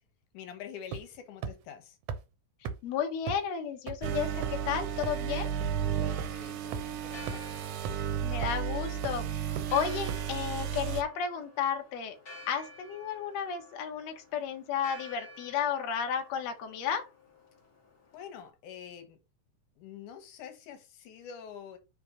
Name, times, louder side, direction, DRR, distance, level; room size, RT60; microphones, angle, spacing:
voice 1, 0.3-2.0 6.0-7.9 18.1-19.2 19.8-21.8, left 8 dB, 85° left, 2.6 m, -46 dB
sound 1, 0.9-1.2 1.4-1.5 2.1-2.2 2.6-2.7 3.3-3.4 3.9-4.0 4.4-4.6 5.0-5.1 5.6-5.7 6.2-6.3 6.7-6.8 7.3-7.4 7.8-7.9 8.4-8.6 9.0-9.1 9.6-9.7 10.1-10.2, right 6 dB, 70° right, 1.6 m, -35 dB
voice 2, 2.8-5.5 8.2-12.2 12.5-17.1, left 7 dB, 65° left, 2.1 m, -33 dB
sound 2, 4.0-11.0, right 8 dB, 85° right, 2.3 m, -33 dB
Church bell, 6.9-18.5, left 2 dB, 35° left, 2.3 m, -52 dB
5.9 x 3.1 x 5.1 m
omnidirectional pair, 3.5 m